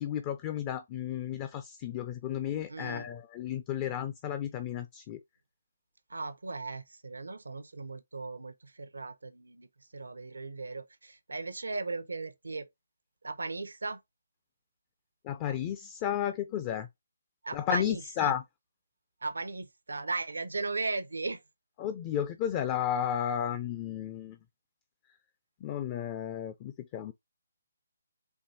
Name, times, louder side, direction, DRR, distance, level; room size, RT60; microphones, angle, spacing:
voice 1, 0.0-5.2 15.2-16.9 17.5-18.4 21.8-24.4 25.6-27.1, left 10 dB, 25° left, 0.4 m, -33 dB
voice 2, 2.7-3.1 6.1-9.7 9.9-12.7 13.2-14.0 17.4-18.3 19.2-21.4, right 3 dB, 85° right, 0.7 m, -37 dB
4.5 x 2.8 x 2.7 m
hypercardioid pair, 150°, 0 cm